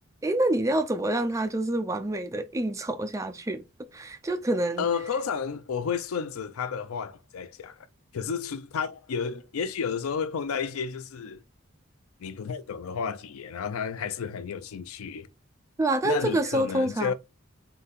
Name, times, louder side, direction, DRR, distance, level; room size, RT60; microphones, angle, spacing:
voice 1, 0.2-3.6 3.9-4.8 15.8-17.1, right 1 dB, 15° right, 0.4 m, -27 dB
voice 2, 4.8-7.9 8.1-11.4 12.2-15.3 16.0-17.1, left 6 dB, 85° left, 0.4 m, -31 dB
3.8 x 2.7 x 4.0 m
head